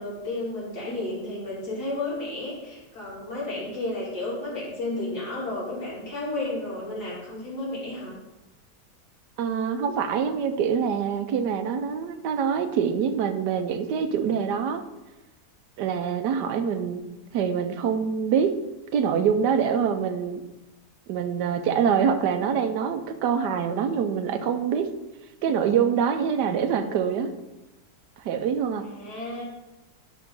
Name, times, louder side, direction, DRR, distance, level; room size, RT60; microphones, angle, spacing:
voice 1, 0.0-8.1 28.8-29.4, left 2 dB, 65° left, -8 dB, 3.7 m, -32 dB
voice 2, 9.4-14.8 15.8-17.0 17.3-18.5 18.9-20.4 21.1-24.9 25.4-27.3 28.2-28.9, right 7 dB, 75° right, 9 dB, 1.3 m, -25 dB
11.0 x 3.7 x 5.4 m, 1.0 s
omnidirectional pair, 1.8 m